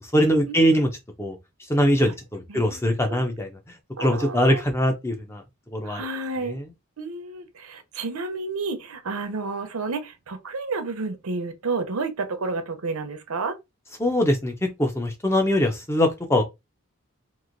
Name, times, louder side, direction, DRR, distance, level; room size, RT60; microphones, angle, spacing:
voice 1, 0.1-0.9 1.2-1.4 1.7-3.5 4.0-5.4 5.7-6.0 6.5-6.7 14.0-16.4, equal, 10° left, 0.5 m, -22 dB
voice 2, 2.5-2.8 3.1-3.2 4.0-4.6 5.8-6.6 7.0-13.5, right 3 dB, 90° right, 0.7 m, -31 dB
3.0 x 2.5 x 2.5 m
head